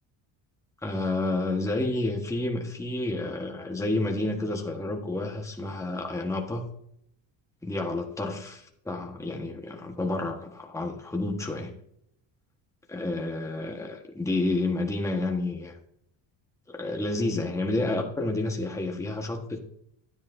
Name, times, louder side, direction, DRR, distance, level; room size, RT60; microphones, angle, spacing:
voice 1, 0.8-6.7 7.6-11.7 12.9-15.8 16.7-19.6, left 2 dB, 5° left, 2 dB, 1.4 m, -30 dB
10.5 x 10.0 x 2.7 m, 0.73 s
cardioid pair, 110°, 46 cm